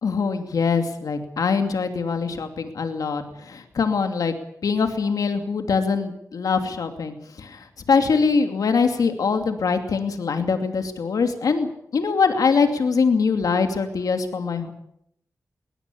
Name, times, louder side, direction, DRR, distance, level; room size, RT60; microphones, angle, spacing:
voice 1, 0.0-4.3 4.6-14.7, left 5 dB, 90° left, 6 dB, 2.7 m, -23 dB
21.5 x 18.0 x 8.5 m, 0.76 s
cardioid pair, 70°, 6 cm